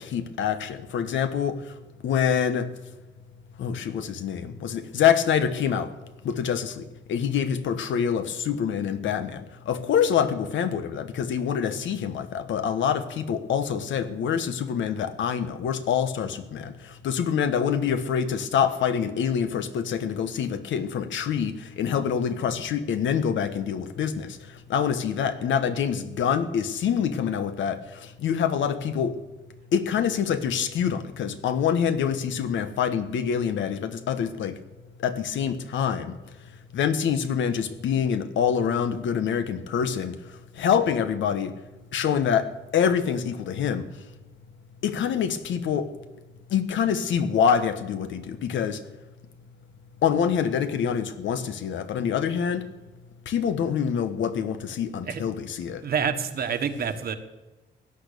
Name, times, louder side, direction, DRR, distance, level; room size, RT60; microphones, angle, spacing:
voice 1, 0.0-1.6 2.0-2.7 3.6-5.9 6.2-16.7 17.0-24.4 24.7-27.8 28.2-29.2 29.7-34.6 35.0-36.1 36.7-40.1 40.6-41.5 41.9-43.8 44.8-45.9 46.5-48.8 50.0-52.6 53.3-55.8, left 7 dB, 85° left, 10 dB, 1.2 m, -26 dB
voice 2, 55.8-57.1, right 7 dB, 55° right, 8 dB, 1.4 m, -27 dB
17.0 x 10.5 x 6.8 m, 1.1 s
cardioid pair, 145°, 19 cm